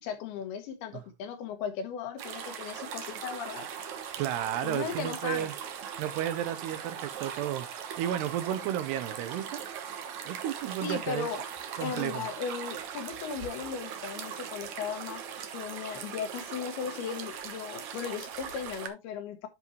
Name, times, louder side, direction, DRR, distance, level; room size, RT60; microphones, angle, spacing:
voice 1, 0.0-3.7 4.6-5.5 10.8-11.4 11.8-15.2 15.5-19.5, left 7 dB, 75° left, 3.1 m, -37 dB
sound 1, 2.2-18.9, right 8 dB, 65° right, 2.0 m, -40 dB
voice 2, 4.2-5.5 6.0-9.6 10.3-11.3 11.8-12.3, right 11 dB, 80° right, 2.9 m, -33 dB
10.5 x 5.3 x 3.1 m
omnidirectional pair, 4.8 m